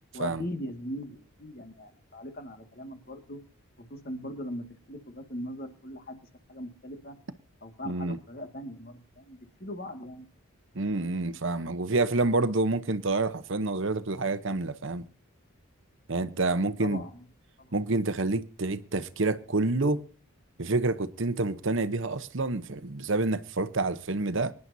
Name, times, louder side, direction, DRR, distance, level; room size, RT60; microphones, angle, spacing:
voice 1, 0.1-3.4 3.8-6.2 6.5-7.2 7.6-10.3 16.8-17.3 17.6-17.7, left 1 dB, 45° left, 2.0 m, -40 dB
voice 2, 7.8-8.2 10.7-15.0 16.1-17.0 17.7-20.0 20.6-24.5, right 2 dB, 60° right, 0.9 m, -28 dB
25.0 x 11.0 x 2.8 m
head